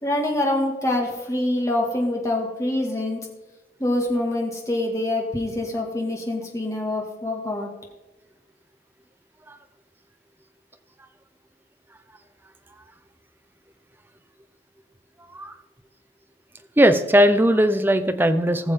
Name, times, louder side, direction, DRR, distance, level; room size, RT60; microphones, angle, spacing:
voice 1, 0.0-3.2 3.8-7.7, left 1 dB, 20° left, 0 dB, 2.1 m, -25 dB
voice 2, 16.8-18.7, equal, 10° right, 8 dB, 0.7 m, -18 dB
19.5 x 6.9 x 3.8 m, 1.1 s
head